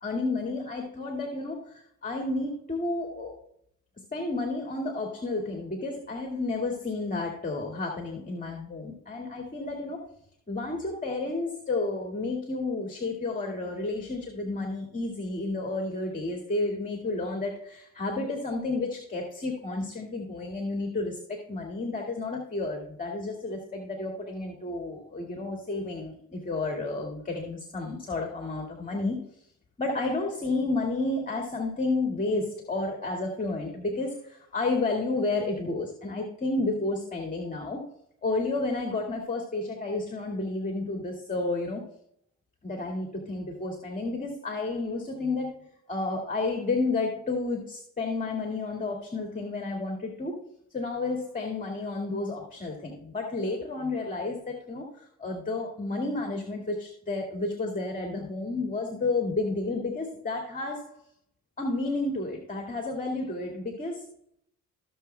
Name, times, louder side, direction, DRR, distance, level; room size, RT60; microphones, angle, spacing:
voice 1, 0.0-3.3 4.1-10.0 10.5-21.2 21.5-29.4 29.8-37.9 38.2-41.8 42.6-50.4 50.7-61.0 61.6-64.1, left 3 dB, 25° left, 1 dB, 2.1 m, -31 dB
17.0 x 6.9 x 2.2 m, 0.68 s
cardioid pair, 90°, 30 cm